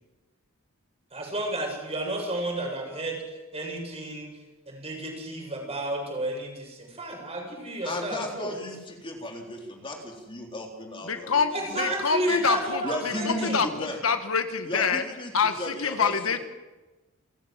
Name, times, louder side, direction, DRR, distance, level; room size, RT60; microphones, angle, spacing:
voice 1, 1.1-3.2 3.5-4.3 4.7-8.5 11.5-13.6, right 1 dB, 30° right, 1 dB, 7.6 m, -32 dB
voice 2, 7.8-12.0 12.3-12.4 12.8-14.0 14.6-16.1, left 1 dB, 25° left, 1 dB, 3.8 m, -35 dB
voice 3, 11.1-12.8 13.3-15.0 15.3-16.4, left 5 dB, 75° left, 8 dB, 1.6 m, -26 dB
29.5 x 15.5 x 7.6 m, 1.1 s
head